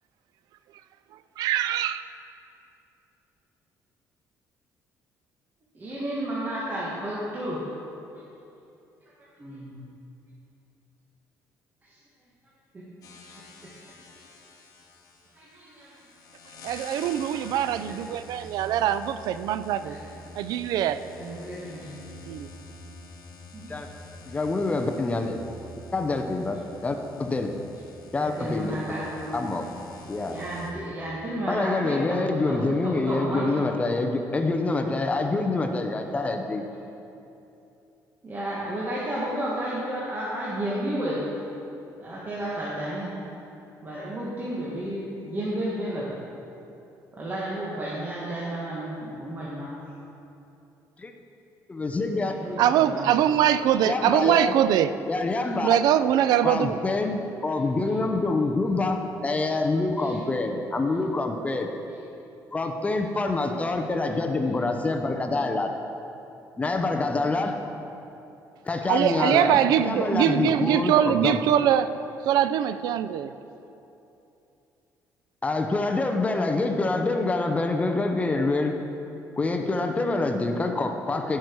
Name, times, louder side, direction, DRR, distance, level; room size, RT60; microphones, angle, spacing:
voice 1, 1.4-2.0 16.6-20.0 20.4-21.0 22.3-22.5 52.6-54.9 55.6-56.8 68.9-71.9 72.2-73.3, right 10 dB, 75° right, 13 dB, 0.5 m, -23 dB
voice 2, 5.7-7.6 9.4-9.8 11.8-11.9 12.7-12.8 13.2-13.3 15.4-16.0 17.6-17.7 19.8-20.1 21.1-21.9 23.5-23.7 25.1-25.2 26.4-26.5 28.2-29.3 29.6-29.8 30.3-33.7 38.2-41.2 42.0-43.1 43.8-46.1 47.1-49.7 52.2-53.4 55.4-55.5 57.5-58.0 59.5-59.6 60.0-60.2 60.9-61.0 61.9-62.0 63.0-64.2, right 1 dB, 30° right, -7 dB, 1.8 m, -33 dB
sound 1, 13.0-30.7, left 2 dB, 60° left, 1.4 m, -47 dB
voice 3, 24.3-25.4 25.9-27.5 28.1-28.7 29.3-29.7 30.1-30.4 31.5-36.6 51.0-51.1 51.7-52.3 53.9-54.5 55.1-55.8 56.4-61.7 62.5-65.7 66.6-67.6 68.7-71.4 75.4-78.8 79.4-81.4, left 3 dB, 20° left, 5 dB, 0.7 m, -26 dB
16.0 x 6.1 x 4.7 m, 2.9 s
cardioid pair, 120°, 7 cm